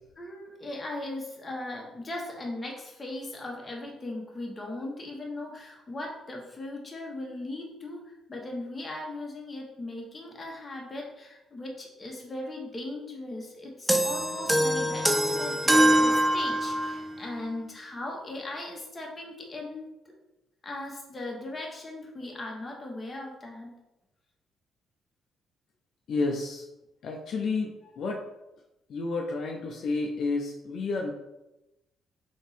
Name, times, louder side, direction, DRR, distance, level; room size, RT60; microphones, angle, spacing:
voice 1, 0.2-19.9 20.6-23.7, left 2 dB, 25° left, -1 dB, 1.1 m, -38 dB
sound 1, 13.9-17.1, equal, 5° right, 0.4 m, -23 dB
voice 2, 26.1-26.6 27.0-28.2 28.9-31.1, left 3 dB, 65° left, 1 dB, 0.5 m, -30 dB
3.5 x 3.0 x 4.1 m, 0.95 s
cardioid pair, 90°, 0 cm